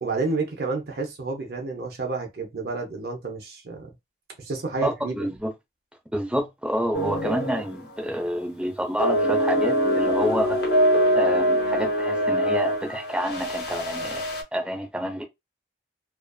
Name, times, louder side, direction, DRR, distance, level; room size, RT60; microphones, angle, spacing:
voice 1, 0.0-3.9 4.4-5.2, right 3 dB, 60° right, 0.6 m, -30 dB
voice 2, 4.8-5.5 6.1-10.6 11.1-14.2 14.5-15.2, equal, 5° right, 0.6 m, -28 dB
sound 1, 6.9-7.7 8.0-8.3 9.0-14.4, equal, 70° left, 0.8 m, -23 dB
2.4 x 2.4 x 2.3 m
head